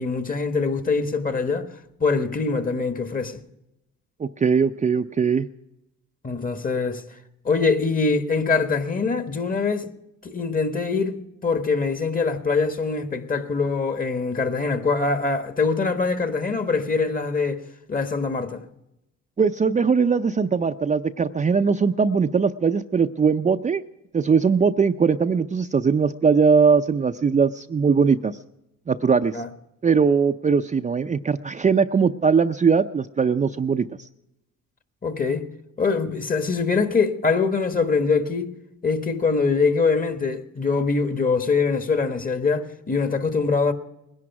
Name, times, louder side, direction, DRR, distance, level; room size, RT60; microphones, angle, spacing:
voice 1, 0.0-1.7 2.0-3.4 6.2-7.0 7.4-9.9 10.2-17.6 17.9-18.6 29.3-29.5 35.0-35.5 35.8-38.5 38.8-43.7, left 4 dB, 30° left, 1.4 m, -23 dB
voice 2, 4.2-5.5 19.4-23.8 24.1-28.4 28.9-29.4 29.8-33.9, right 5 dB, 25° right, 0.5 m, -20 dB
20.0 x 11.0 x 5.9 m
cardioid pair, 90°, 30 cm